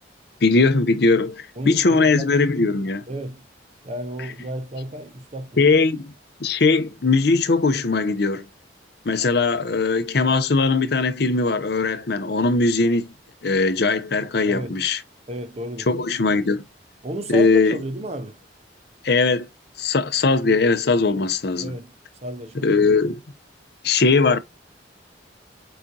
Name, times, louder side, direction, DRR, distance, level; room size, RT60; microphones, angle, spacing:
voice 1, 0.4-3.0 5.6-6.1 6.4-8.4 9.1-13.1 13.4-15.0 15.9-16.6 17.3-17.8 19.0-19.5 19.8-21.8 22.6-23.2 23.8-24.4, left 3 dB, 60° left, 0.6 m, -20 dB
voice 2, 1.6-2.3 3.1-3.5 3.8-5.6 14.5-14.7 15.3-15.9 17.0-18.4 21.6-21.9 22.2-22.7, right 1 dB, 35° right, 0.7 m, -32 dB
4.9 x 3.7 x 2.7 m
head